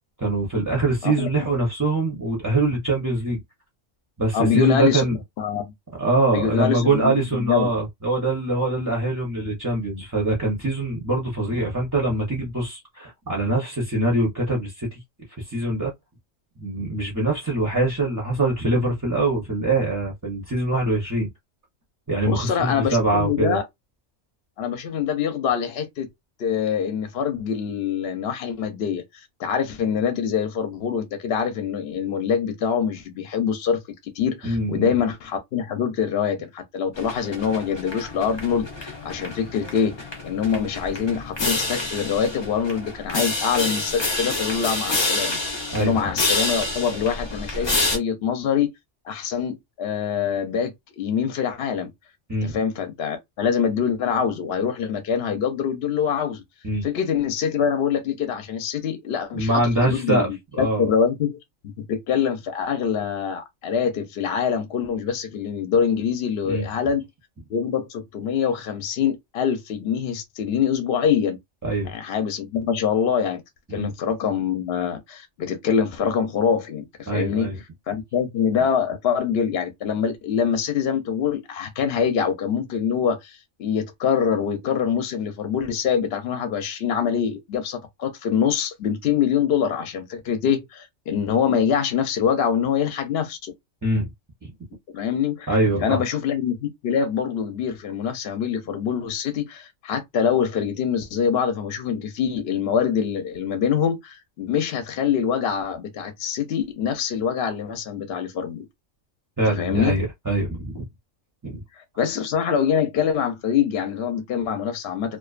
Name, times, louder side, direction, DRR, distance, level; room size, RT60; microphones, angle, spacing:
voice 1, 0.2-3.4 4.2-5.2 6.0-15.0 15.4-15.9 16.6-21.3 22.1-23.6 34.4-34.9 45.7-46.0 52.3-52.6 56.6-56.8 59.3-60.3 60.6-60.9 66.4-66.7 71.6-71.9 73.7-73.9 77.1-77.6 93.8-94.1 94.4-94.5 95.5-96.0 109.4-110.9 111.4-111.6, right 2 dB, 20° right, 0.6 m, -23 dB
voice 2, 4.3-5.0 5.4-5.7 6.3-7.7 22.2-23.6 24.6-26.1 26.4-45.4 45.7-48.7 49.0-51.9 52.4-56.4 56.8-61.4 61.6-67.0 67.5-71.4 71.9-73.4 73.7-77.5 77.9-93.5 94.9-95.5 95.8-108.7 109.6-110.0 111.8-115.2, left 7 dB, 65° left, 0.7 m, -24 dB
sound 1, 36.9-48.0, left 2 dB, 35° left, 0.5 m, -28 dB
2.4 x 2.2 x 2.4 m
omnidirectional pair, 1.3 m